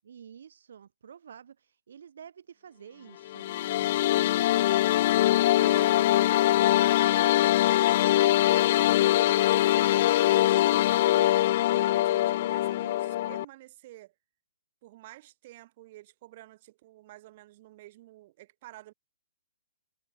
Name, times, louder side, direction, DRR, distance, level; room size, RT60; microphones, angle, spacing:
voice 1, 0.0-4.6 5.4-5.9, right 8 dB, 65° right, 3.5 m, -50 dB
sound 1, 3.3-13.4, left 14 dB, 40° left, 0.4 m, -23 dB
voice 2, 5.6-7.9 8.2-11.4 11.7-14.1 14.8-18.9, right 17 dB, 35° right, 5.0 m, -49 dB
hypercardioid pair, 160°, 0 cm